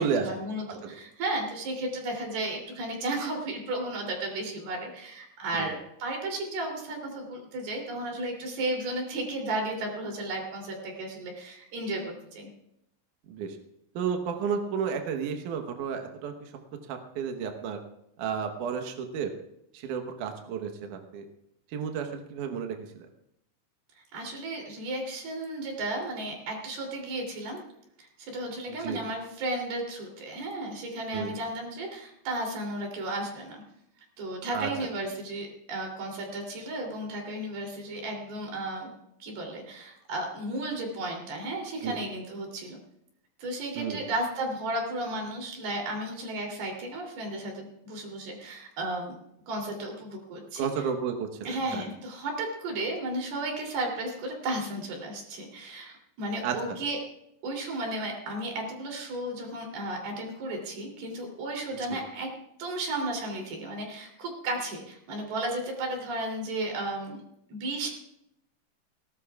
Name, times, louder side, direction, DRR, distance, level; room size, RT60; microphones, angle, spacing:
voice 1, 0.0-12.5 24.1-27.6 28.0-33.6 34.2-38.9 39.2-42.8 43.4-49.2 49.5-50.7 51.4-57.0 57.4-62.3 62.6-67.2 67.5-67.9, right 1 dB, 60° right, 1 dB, 4.8 m, -34 dB
voice 2, 13.9-16.5 16.9-17.8 18.2-19.3 19.7-21.3 21.7-23.1 28.7-29.0 31.1-31.3 34.5-34.7 41.8-42.0 43.8-44.0 50.6-51.8 56.4-56.8 61.9-62.0, right 6 dB, 80° right, 5 dB, 1.8 m, -32 dB
19.0 x 18.0 x 2.4 m, 0.79 s
omnidirectional pair, 5.4 m